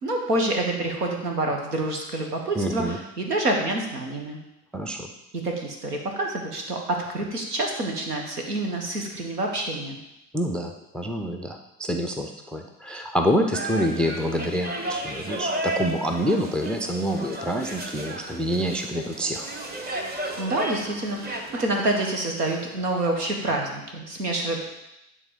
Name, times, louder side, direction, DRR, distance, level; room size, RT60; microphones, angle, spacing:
voice 1, 0.0-4.4 5.3-10.0 20.4-24.6, right 2 dB, 85° right, 2 dB, 1.5 m, -27 dB
voice 2, 2.6-3.0 4.7-5.1 10.3-19.5, equal, ahead, 4 dB, 0.3 m, -27 dB
sound 1, 13.5-23.2, right 1 dB, 20° right, 1.1 m, -34 dB
9.9 x 3.6 x 5.2 m, 0.88 s
hypercardioid pair, 75°, 46 cm